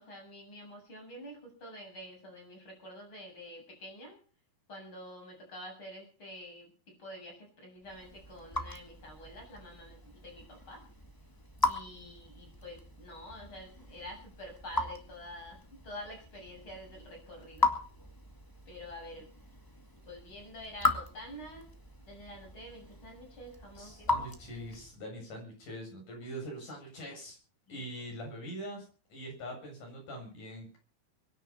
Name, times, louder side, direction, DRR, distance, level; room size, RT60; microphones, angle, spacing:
voice 1, 0.0-4.2 4.7-10.8 11.6-17.7 18.7-19.3 20.0-21.7 22.0-24.1 27.7-27.8, left 1 dB, 30° left, 1 dB, 8.3 m, -48 dB
Raindrop / Drip, 7.8-25.0, left 3 dB, 15° left, 0.6 m, -38 dB
voice 2, 23.8-27.4 27.7-28.8 29.1-30.8, equal, 55° left, 1 dB, 9.2 m, -43 dB
23.5 x 10.5 x 5.6 m, 0.38 s
omnidirectional pair, 4.3 m